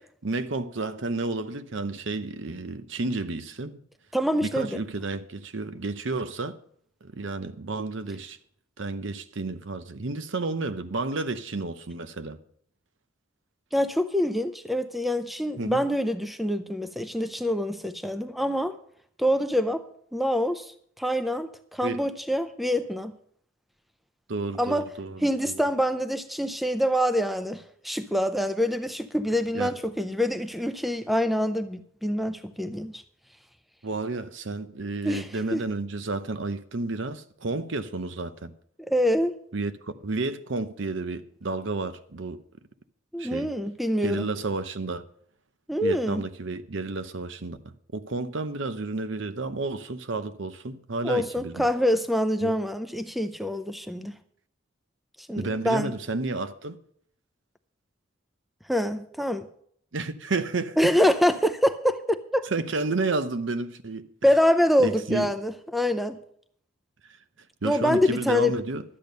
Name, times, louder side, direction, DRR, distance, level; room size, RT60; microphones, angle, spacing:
voice 1, 0.2-3.8 4.4-6.6 7.0-8.4 8.8-12.4 15.6-15.8 21.8-22.0 24.3-25.6 29.5-29.8 33.8-38.5 39.5-42.4 43.2-43.5 44.0-45.0 45.8-51.7 52.4-52.6 55.4-56.8 59.9-60.8 62.4-64.1 64.8-65.3 67.6-68.8, right 3 dB, 65° right, 0.8 m, -31 dB
voice 2, 4.1-4.7 13.7-18.7 19.2-19.8 20.1-23.1 24.6-24.8 25.2-33.0 35.0-35.6 38.9-39.3 43.1-44.3 45.7-46.2 51.0-54.1 55.3-55.9 58.7-59.5 60.8-62.5 64.2-66.2 67.6-68.5, equal, ahead, 0.5 m, -25 dB
12.0 x 8.7 x 5.3 m
head